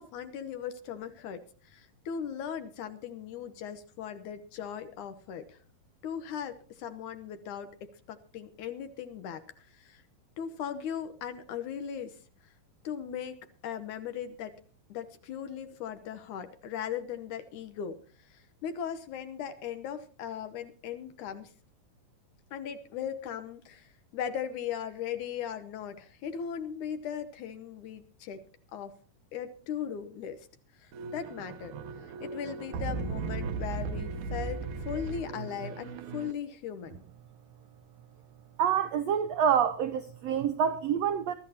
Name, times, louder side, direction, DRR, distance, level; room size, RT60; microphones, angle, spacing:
voice 1, 0.0-5.6 6.0-10.0 10.4-12.2 12.8-14.5 14.9-18.0 18.2-21.5 22.5-28.4 28.7-28.9 29.3-30.5 30.8-31.7 32.0-37.0, left 8 dB, 70° left, 2.3 m, -38 dB
sound 1, 30.9-36.3, right 4 dB, 70° right, 2.2 m, -37 dB
voice 2, 38.6-41.3, right 8 dB, 90° right, 1.4 m, -27 dB
23.0 x 13.0 x 2.8 m
omnidirectional pair, 4.0 m